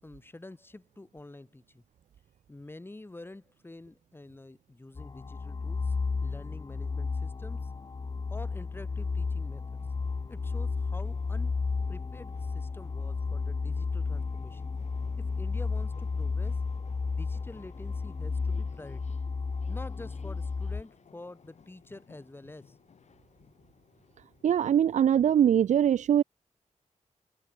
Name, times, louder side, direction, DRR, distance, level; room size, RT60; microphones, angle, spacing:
voice 1, 0.0-1.8 2.5-7.7 8.3-9.6 10.3-11.6 11.9-14.7 15.2-16.6 17.0-19.2 19.7-22.8, left 2 dB, 15° left, 7.8 m, -48 dB
sound 1, 5.0-20.8, left 4 dB, 35° left, 1.2 m, -33 dB
sound 2, 7.7-25.1, left 6 dB, 65° left, 7.5 m, -56 dB
voice 2, 24.4-26.2, right 9 dB, 75° right, 0.4 m, -22 dB
wide cardioid pair, 145°, 13 cm